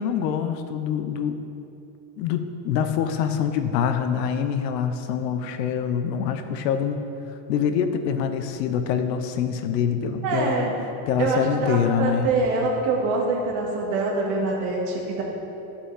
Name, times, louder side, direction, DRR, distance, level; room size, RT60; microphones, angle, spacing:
voice 1, 0.0-1.4 2.2-7.0 7.5-10.7 11.1-12.3, left 7 dB, 85° left, 8 dB, 0.9 m, -25 dB
voice 2, 10.2-10.7 11.2-15.2, right 3 dB, 55° right, -2 dB, 2.0 m, -24 dB
12.5 x 5.7 x 4.2 m, 2.9 s
supercardioid pair, 160°, 49 cm